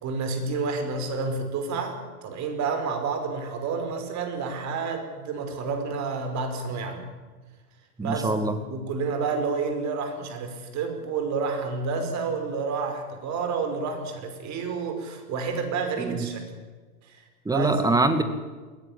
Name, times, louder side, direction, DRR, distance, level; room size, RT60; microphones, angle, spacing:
voice 1, 0.0-7.0 8.0-16.4 17.1-17.7, right 4 dB, 35° right, 6 dB, 5.3 m, -30 dB
voice 2, 8.0-8.6 16.0-16.3 17.5-18.2, right 2 dB, 10° right, 10 dB, 2.3 m, -23 dB
22.0 x 17.5 x 8.9 m, 1.3 s
hypercardioid pair, 105°, 45 cm